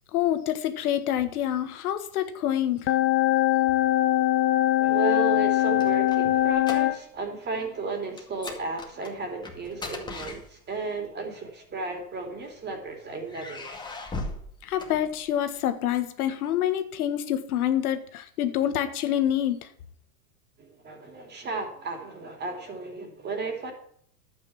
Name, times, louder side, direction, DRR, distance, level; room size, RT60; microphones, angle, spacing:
voice 1, 0.1-2.9 14.6-19.6, left 11 dB, 65° left, 9 dB, 1.6 m, -27 dB
sound 1, 2.9-7.0, left 15 dB, 25° left, 0.7 m, -22 dB
voice 2, 4.8-13.7 20.6-23.7, right 3 dB, 20° right, 4 dB, 3.0 m, -34 dB
sound 2, 5.4-7.3 7.5-7.8 8.2-11.0 11.8-12.7 13.3-15.6, left 2 dB, 10° left, 2.1 m, -39 dB
11.5 x 8.8 x 5.9 m, 0.63 s
hypercardioid pair, 125°, 46 cm